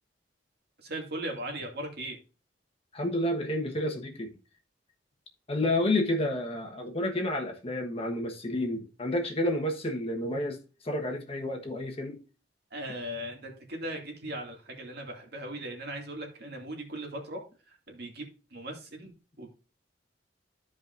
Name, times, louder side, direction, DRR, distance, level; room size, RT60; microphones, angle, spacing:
voice 1, 0.8-2.2 12.7-19.1 19.4-19.5, right 1 dB, 60° right, 2.4 m, -38 dB
voice 2, 2.9-4.3 5.5-10.6 10.8-12.2, left 1 dB, 35° left, 1.3 m, -30 dB
14.0 x 5.0 x 2.6 m
head